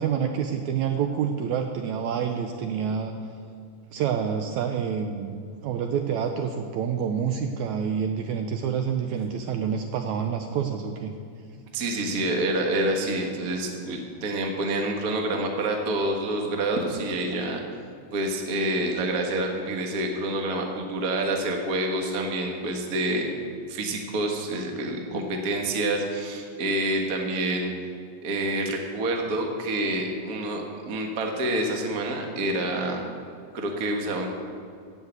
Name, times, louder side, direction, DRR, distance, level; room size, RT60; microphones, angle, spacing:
voice 1, 0.0-3.1 3.9-5.4 5.6-11.1, right 7 dB, 80° right, 5 dB, 1.7 m, -27 dB
voice 2, 11.7-17.6 18.1-23.3 23.7-27.7 28.2-33.0 33.5-34.3, right 1 dB, 60° right, 2 dB, 0.9 m, -27 dB
16.0 x 5.6 x 8.0 m, 2.3 s
omnidirectional pair, 3.9 m